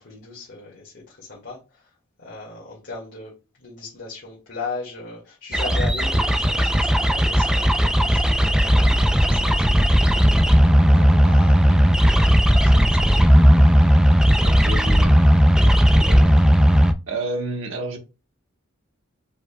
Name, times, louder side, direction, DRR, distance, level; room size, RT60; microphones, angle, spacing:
voice 1, 0.0-1.9 2.2-10.0 10.6-11.7 12.0-13.5 15.5-15.8, left 3 dB, 60° left, 1.9 m, -38 dB
sound 1, 5.5-16.9, equal, 5° right, 0.4 m, -16 dB
voice 2, 11.6-12.0 14.4-15.3 15.9-16.5 17.1-18.0, right 2 dB, 70° right, 1.3 m, -31 dB
5.0 x 4.6 x 2.3 m
head